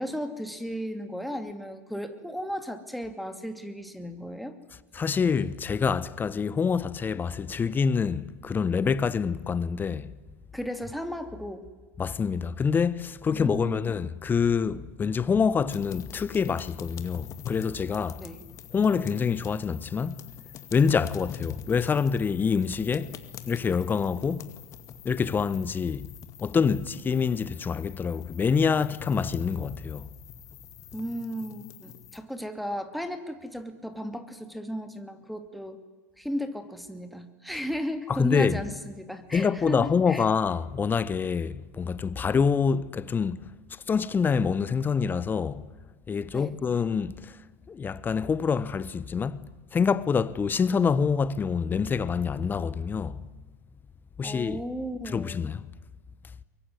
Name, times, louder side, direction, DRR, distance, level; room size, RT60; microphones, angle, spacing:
voice 1, 0.0-4.5 10.5-11.7 13.3-13.9 18.2-18.4 30.9-35.8 36.2-40.2 46.3-46.6 54.2-55.5, equal, ahead, 2.5 m, -35 dB
voice 2, 4.9-10.1 12.0-18.2 18.7-20.2 20.7-23.2 23.5-24.5 25.0-26.1 26.4-30.1 38.1-38.6 39.3-43.4 43.9-45.6 46.1-47.4 47.7-53.2 54.2-54.6 55.1-55.6, left 6 dB, 20° left, 1.1 m, -26 dB
sound 1, 15.7-32.2, left 9 dB, 40° left, 2.2 m, -44 dB
23.0 x 23.0 x 9.7 m
hypercardioid pair, 95°, 9 cm